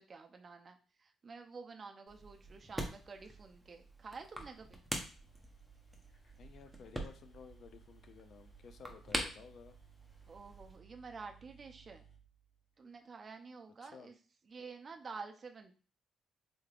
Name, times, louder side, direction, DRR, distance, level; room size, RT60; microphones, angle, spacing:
voice 1, 0.0-4.8 10.3-12.0 12.8-14.1 14.5-15.7, right 4 dB, 40° right, 5 dB, 0.5 m, -50 dB
sound 1, 2.1-10.8, right 1 dB, 10° right, 0.7 m, -45 dB
sound 2, 5.2-13.1, right 7 dB, 90° left, 1.0 m, -62 dB
voice 2, 6.4-9.8 13.8-14.1, left 6 dB, 65° left, 9 dB, 0.4 m, -55 dB
3.4 x 3.2 x 2.4 m, 0.37 s
cardioid pair, 90°, 0 cm